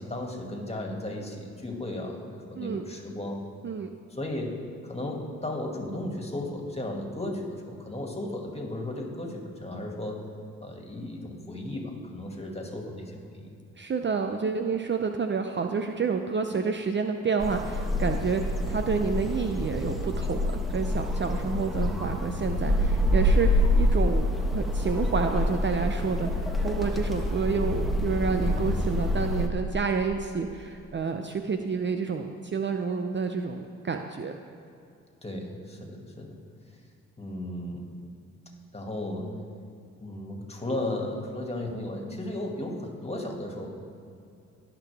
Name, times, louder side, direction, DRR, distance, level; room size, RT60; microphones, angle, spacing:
voice 1, 0.0-3.4 4.1-4.6 4.8-10.3 10.6-13.5 35.2-36.4 37.2-37.9 38.7-39.3 40.0-43.7, left 1 dB, 20° left, 0 dB, 2.3 m, -35 dB
voice 2, 13.8-24.3 24.5-26.3 26.6-34.4, right 5 dB, 35° right, 6 dB, 0.7 m, -29 dB
sound 1, 17.4-29.5, left 1 dB, ahead, 1.3 m, -26 dB
18.0 x 6.0 x 3.5 m, 2.5 s
supercardioid pair, 60°, 33 cm